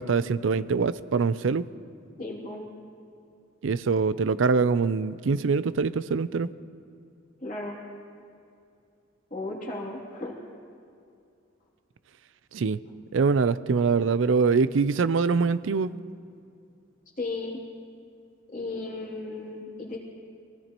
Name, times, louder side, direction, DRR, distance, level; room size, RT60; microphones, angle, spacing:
voice 1, 0.0-1.6 3.6-6.5 12.5-12.8 13.1-15.9, right 5 dB, 85° right, 15 dB, 0.5 m, -24 dB
voice 2, 2.2-2.7 7.4-7.8 9.3-10.3 17.2-17.6 18.5-20.0, left 2 dB, 45° left, -3 dB, 2.8 m, -35 dB
23.5 x 17.5 x 3.0 m, 2.5 s
head